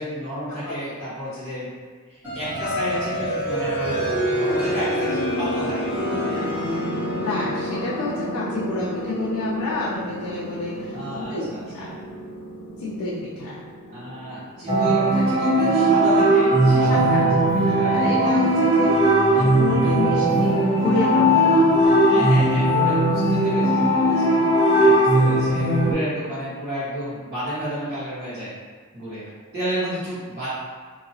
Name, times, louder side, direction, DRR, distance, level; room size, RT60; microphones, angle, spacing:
voice 1, 0.0-1.7 2.1-5.9 6.2-6.5 10.9-11.9 13.9-17.9 22.1-24.3 24.8-28.5 28.9-29.2 29.5-30.5, equal, 45° right, -14 dB, 1.4 m, -31 dB
sound 1, 2.2-14.8, equal, 5° right, 0.9 m, -28 dB
voice 2, 7.1-11.9 12.8-13.6 14.7-15.0 16.7-22.1, left 2 dB, 75° left, -6 dB, 0.5 m, -29 dB
sound 2, 14.7-25.9, right 1 dB, 30° right, 0.6 m, -18 dB
2.8 x 2.7 x 2.7 m, 1.5 s
head